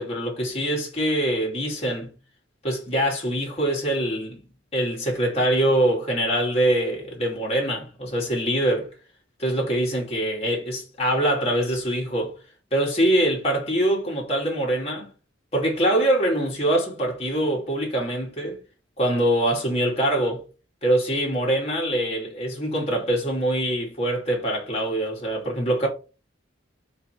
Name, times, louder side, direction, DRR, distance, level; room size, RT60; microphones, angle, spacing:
voice 1, 0.0-2.1 2.6-4.4 4.7-8.9 9.4-12.3 12.7-15.1 15.5-18.6 19.0-20.4 20.8-25.9, right 1 dB, 35° left, 2.8 m, -24 dB
4.8 x 4.6 x 4.6 m
head